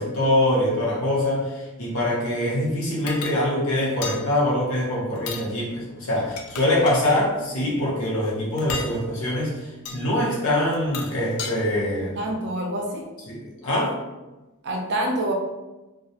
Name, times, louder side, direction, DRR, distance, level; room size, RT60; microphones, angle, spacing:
voice 1, 0.0-12.3 13.3-13.9, left 1 dB, 65° left, -5 dB, 0.8 m, -24 dB
sound 1, 3.1-3.4 4.0-4.2 5.2-5.5 6.2-7.1 8.6-8.9 9.9-10.0 10.7-11.5, left 5 dB, 85° left, 0.3 m, -33 dB
voice 2, 11.9-13.1 14.6-15.3, right 1 dB, 50° right, 0 dB, 0.4 m, -27 dB
2.3 x 2.0 x 2.7 m, 1.1 s
head